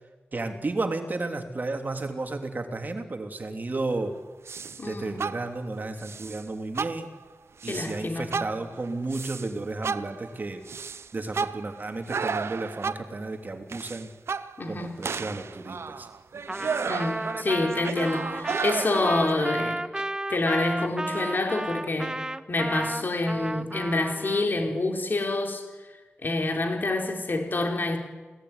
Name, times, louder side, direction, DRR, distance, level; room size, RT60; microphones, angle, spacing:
voice 1, 0.3-4.1 4.8-7.1 7.6-10.6 11.1-14.1 14.7-16.1, right 3 dB, 45° right, 5 dB, 3.1 m, -33 dB
sound 1, 4.5-4.9 5.2-5.7 6.0-6.4 6.8-7.2 7.6-8.0 8.3-9.5 9.8-13.2 13.7-14.7 15.0-19.5, right 5 dB, 80° right, 0.8 m, -33 dB
voice 2, 4.8-5.2 7.7-8.5 14.6-15.1 16.9-19.8 20.3-22.2 22.5-25.7 26.2-28.0, left 2 dB, 50° left, 3 dB, 4.2 m, -27 dB
Trumpet, 16.5-24.5, right 1 dB, 15° right, 0.9 m, -33 dB
28.5 x 18.5 x 9.7 m, 1.3 s
wide cardioid pair, 110°, 4 cm